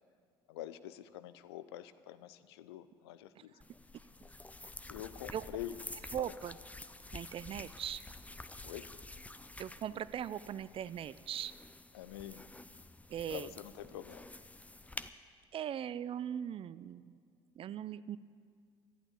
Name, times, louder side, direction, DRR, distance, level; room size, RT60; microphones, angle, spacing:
voice 1, 0.5-3.5 4.9-5.7 6.2-6.3 8.6-8.8 11.9-12.5 13.3-14.2, left 12 dB, 75° left, 13 dB, 0.6 m, -46 dB
sound 1, 3.6-15.1, left 2 dB, 10° left, 0.7 m, -50 dB
voice 2, 6.1-6.6 7.1-8.0 9.6-11.5 13.1-13.5 15.5-17.2 17.6-18.2, right 10 dB, 45° right, 17 dB, 0.5 m, -39 dB
12.0 x 11.0 x 8.6 m, 2.3 s
figure-of-eight pair, 55°, 13 cm